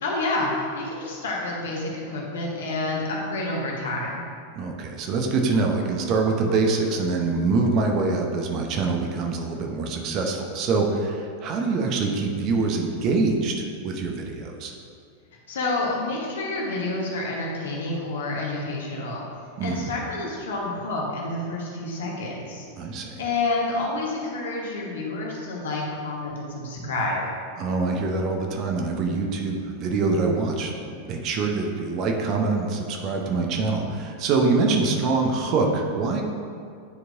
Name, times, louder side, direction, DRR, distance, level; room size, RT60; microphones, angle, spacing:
voice 1, 0.0-4.2 15.5-19.2 19.6-22.6 23.2-27.2, left 2 dB, 60° left, -2 dB, 1.3 m, -29 dB
voice 2, 4.5-14.7 19.6-19.9 22.8-23.2 27.6-30.7 31.0-36.2, right 3 dB, 35° right, 2 dB, 0.8 m, -24 dB
9.7 x 4.6 x 2.6 m, 2.3 s
figure-of-eight pair, 90°, 0 cm